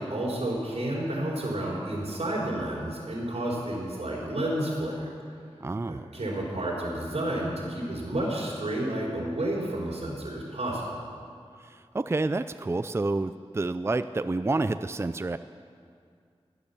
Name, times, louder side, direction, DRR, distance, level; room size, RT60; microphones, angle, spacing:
voice 1, 0.0-5.1 5.9-10.9, right 1 dB, 90° right, -4 dB, 4.2 m, -31 dB
voice 2, 5.6-6.1 11.6-15.4, right 2 dB, 25° right, 11 dB, 0.4 m, -29 dB
15.5 x 10.5 x 7.1 m, 2.2 s
wide cardioid pair, 65°, 11 cm